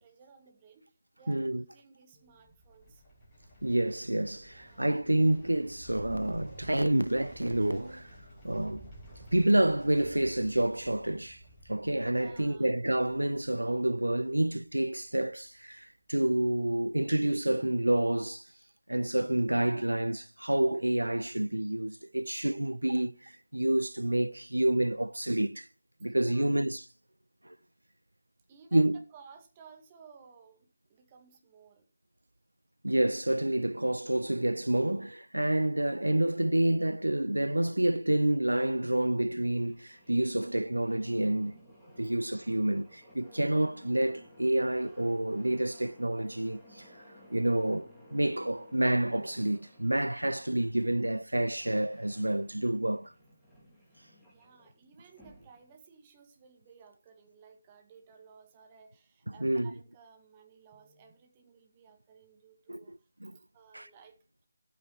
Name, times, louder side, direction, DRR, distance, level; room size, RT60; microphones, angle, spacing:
voice 1, 0.0-3.0 4.5-4.9 12.2-12.8 26.0-26.6 28.5-31.9 53.9-63.1 63.3-64.2, right 6 dB, 20° right, 2.0 m, -57 dB
voice 2, 1.3-1.6 3.6-8.2 8.4-8.9 9.3-18.5 18.9-25.7 26.0-26.8 27.4-27.5 28.7-29.0 32.8-41.6 42.0-47.0 47.3-53.1 59.4-59.7 62.7-63.3 63.7-63.9, right 1 dB, 80° right, 0.5 m, -28 dB
sound 1, 2.2-15.4 15.7-15.8, right 1 dB, 20° left, 6.3 m, -53 dB
sound 2, 39.4-55.8, equal, 5° left, 3.7 m, -57 dB
12.5 x 9.2 x 4.7 m
figure-of-eight pair, 155°, 0 cm